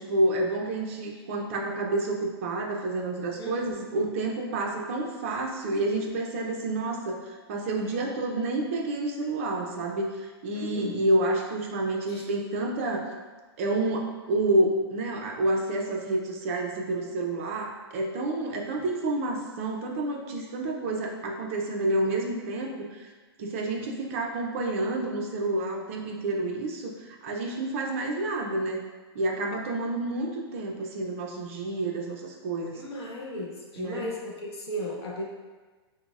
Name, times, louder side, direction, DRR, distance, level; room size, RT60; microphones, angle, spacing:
voice 1, 0.0-13.1 13.6-23.1 23.4-28.8 29.1-32.8 33.8-34.1, right 2 dB, 30° right, 0 dB, 0.4 m, -29 dB
voice 2, 3.4-3.8 10.5-11.0 12.1-12.2 32.7-35.2, left 1 dB, 70° left, -2 dB, 0.9 m, -36 dB
6.0 x 2.0 x 2.3 m, 1.3 s
hypercardioid pair, 170°, 14 cm